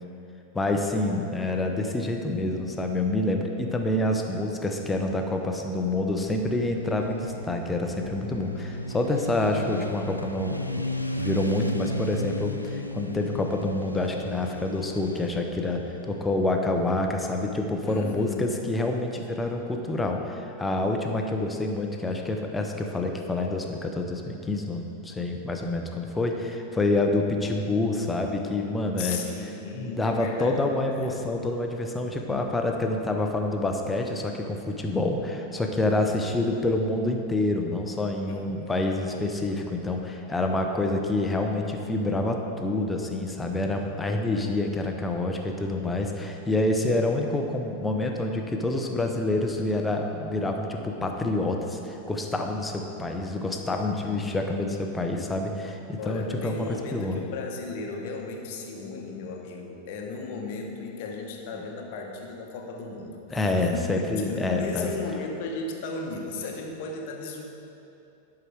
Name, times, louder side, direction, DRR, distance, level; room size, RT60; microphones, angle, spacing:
voice 1, 0.5-10.9 11.2-15.8 16.1-29.2 29.7-57.2 61.5-61.6 63.3-64.9, left 2 dB, 10° left, 3 dB, 0.8 m, -27 dB
Motorcycle, 5.7-17.4, left 1 dB, 90° left, 0.4 m, -35 dB
voice 2, 17.9-18.7 29.0-31.1 38.3-38.7 54.0-54.4 56.0-67.4, left 3 dB, 50° left, 2 dB, 1.0 m, -35 dB
11.0 x 5.0 x 4.6 m, 2.8 s
figure-of-eight pair, 90°, 0 cm